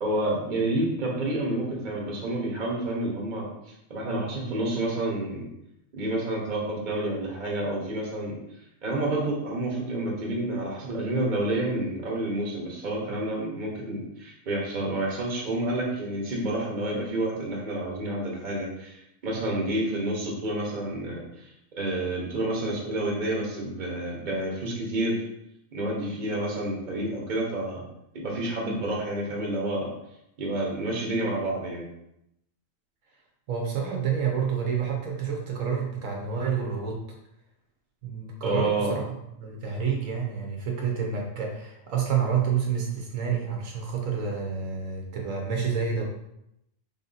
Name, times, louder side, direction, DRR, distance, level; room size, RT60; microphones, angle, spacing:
voice 1, 0.0-3.5 3.9-5.5 5.9-8.4 8.8-21.5 21.8-25.2 25.7-27.8 28.1-29.9 30.4-31.9 38.4-39.0, right 1 dB, 40° right, -2 dB, 1.0 m, -29 dB
voice 2, 33.5-37.0 38.0-46.0, right 6 dB, 75° right, 0 dB, 1.1 m, -29 dB
3.6 x 2.7 x 3.9 m, 0.82 s
omnidirectional pair, 1.4 m